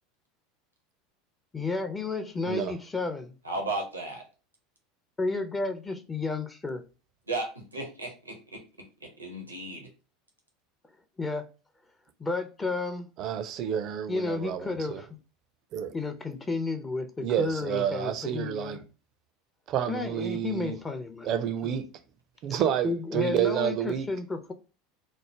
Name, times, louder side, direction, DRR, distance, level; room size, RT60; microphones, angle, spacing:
voice 1, 1.5-3.3 5.2-6.8 11.2-11.5 12.2-13.1 14.1-15.1 15.9-18.8 19.9-21.4 21.6-21.8 22.8-24.5, left 3 dB, 20° left, 0.5 m, -32 dB
voice 2, 3.4-4.2 7.3-9.9, right 2 dB, 85° right, 0.6 m, -35 dB
voice 3, 13.2-15.0 15.7-15.9 17.2-18.8 19.7-20.8 21.2-21.9 22.4-24.1, right 9 dB, 45° right, 0.4 m, -29 dB
3.1 x 2.1 x 3.2 m
figure-of-eight pair, 75°, 0 cm